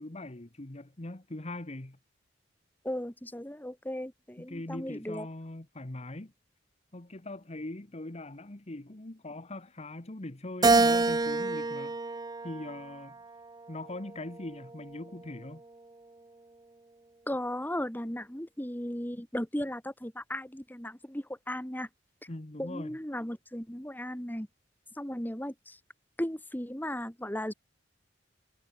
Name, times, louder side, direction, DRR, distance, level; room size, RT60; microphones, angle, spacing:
voice 1, 0.0-2.0 4.4-6.3 6.9-13.2 13.7-15.6 22.3-23.0, left 2 dB, 35° left, 1.4 m, -41 dB
voice 2, 2.8-5.3 17.3-21.9 22.6-24.5 24.9-25.8 26.2-27.5, left 1 dB, 10° left, 3.2 m, -36 dB
Keyboard (musical), 10.6-13.1 13.7-14.9, right 3 dB, 20° right, 0.6 m, -27 dB
head